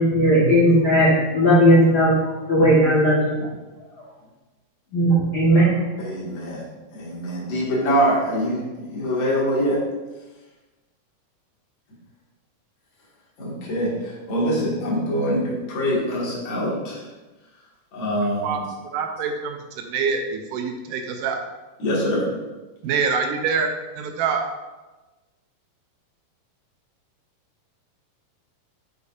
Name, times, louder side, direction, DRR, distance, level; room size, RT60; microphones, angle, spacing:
voice 1, 0.0-2.1 2.5-3.5 4.9-5.7, equal, 80° left, -8 dB, 0.9 m, -16 dB
voice 2, 6.0-6.6 6.9-9.8 13.4-17.0 17.9-18.6 21.8-22.3, equal, 40° left, -6 dB, 2.1 m, -24 dB
voice 3, 18.9-19.6 19.8-21.4 22.8-23.7 24.0-24.4, right 5 dB, 80° right, 4 dB, 2.0 m, -25 dB
6.7 x 6.5 x 2.5 m, 1.2 s
omnidirectional pair, 4.1 m